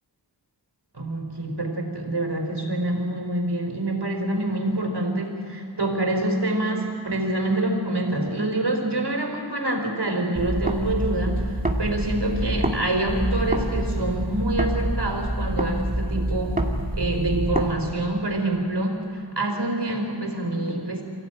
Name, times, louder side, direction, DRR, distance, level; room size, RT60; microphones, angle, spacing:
voice 1, 0.9-16.6 16.9-21.0, right 1 dB, 70° right, 3 dB, 4.4 m, -26 dB
sound 1, 10.3-12.8 13.1-17.7, right 1 dB, 20° right, 2.4 m, -26 dB
24.5 x 16.0 x 9.0 m, 2.6 s
wide cardioid pair, 60°, 43 cm